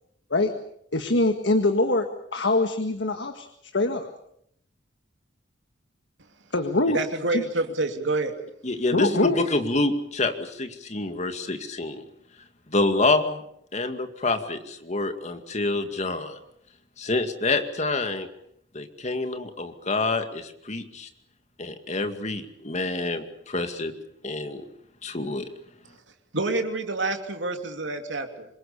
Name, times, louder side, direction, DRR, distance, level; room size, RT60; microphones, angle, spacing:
voice 1, 0.9-2.1 2.3-3.5 3.7-4.1 6.5-7.0 7.3-7.4 8.9-9.4, left 2 dB, 75° left, 7 dB, 1.7 m, -23 dB
voice 2, 6.9-8.4 26.3-28.5, right 2 dB, 80° right, 5 dB, 3.0 m, -27 dB
voice 3, 8.6-12.0 12.7-13.4 13.7-16.4 17.0-18.3 18.7-21.1 21.6-23.9 24.2-24.7 25.0-25.5, left 2 dB, 40° left, 7 dB, 2.2 m, -27 dB
26.5 x 22.0 x 7.0 m, 0.72 s
head